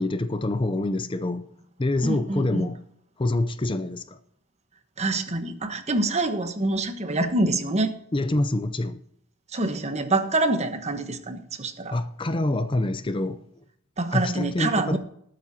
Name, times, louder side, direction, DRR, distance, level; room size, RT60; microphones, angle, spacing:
voice 1, 0.0-1.5 1.8-2.8 3.2-4.2 8.1-9.0 11.9-13.4 14.1-15.0, left 2 dB, 25° left, 0.5 m, -26 dB
voice 2, 2.0-2.7 5.0-7.9 9.5-12.0 14.0-15.0, right 2 dB, 35° right, 1.2 m, -26 dB
19.5 x 9.4 x 2.8 m
head